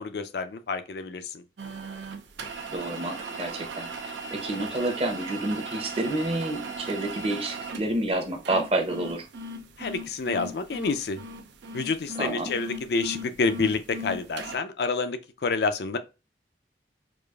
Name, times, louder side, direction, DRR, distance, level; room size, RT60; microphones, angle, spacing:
voice 1, 0.0-1.4 9.8-11.2 11.7-16.0, left 4 dB, 65° left, 0.4 m, -28 dB
sound 1, 1.6-14.6, right 2 dB, 85° right, 0.5 m, -38 dB
voice 2, 2.7-9.2 12.2-12.5, right 1 dB, 35° right, 0.7 m, -29 dB
4.8 x 2.4 x 2.3 m
head